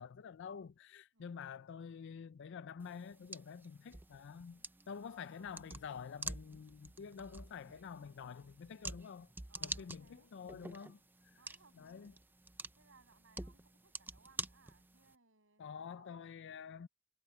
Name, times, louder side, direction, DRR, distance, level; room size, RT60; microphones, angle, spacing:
voice 1, 0.0-4.6 4.9-9.3 9.6-11.0 11.8-12.1 15.6-16.9, left 6 dB, 55° left, 0.4 m, -48 dB
voice 2, 1.1-1.5 4.9-5.5 9.5-10.3 11.3-12.1 12.7-16.3, right 4 dB, 65° right, 7.2 m, -67 dB
sound 1, 2.8-15.1, right 3 dB, 10° right, 0.5 m, -49 dB
head